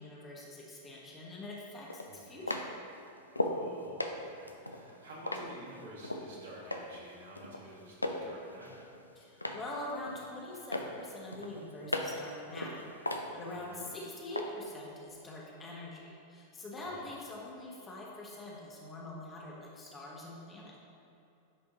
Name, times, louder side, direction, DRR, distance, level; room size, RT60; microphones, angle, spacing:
voice 1, 0.0-2.6 9.2-20.8, left 1 dB, 20° left, -3 dB, 1.2 m, -44 dB
sound 1, 0.9-1.0 1.9-3.6 4.0-6.3 6.7-7.1 7.3-8.3 8.6-9.7 10.1-10.4 10.7-12.3 12.6-13.9 14.3-14.4, left 1 dB, 85° left, 0.4 m, -36 dB
voice 2, 2.1-2.4 3.4-7.9 8.2-8.9 13.5-13.8 16.8-17.1, right 1 dB, 65° right, -4 dB, 1.6 m, -51 dB
9.8 x 5.1 x 2.9 m, 2.7 s
figure-of-eight pair, 90°, 0 cm